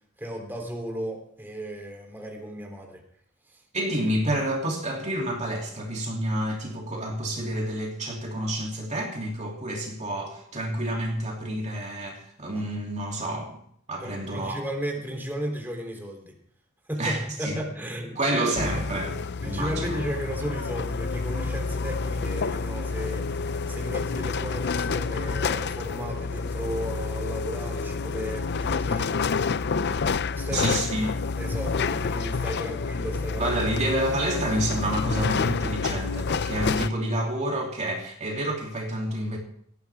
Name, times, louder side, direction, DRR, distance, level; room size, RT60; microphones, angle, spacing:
voice 1, 0.2-3.0 14.0-16.3 16.9-18.8 19.4-29.2 30.3-31.0 31.4-33.6, equal, 10° right, 1 dB, 3.3 m, -35 dB
voice 2, 3.7-13.6 13.9-14.6 17.0-17.6 18.1-19.2 19.4-20.0 30.5-31.1 33.4-39.4, right 1 dB, 35° right, -1 dB, 3.0 m, -29 dB
sound 1, 18.6-36.9, left 4 dB, 55° left, 0.6 m, -28 dB
19.0 x 15.0 x 3.6 m, 0.63 s
head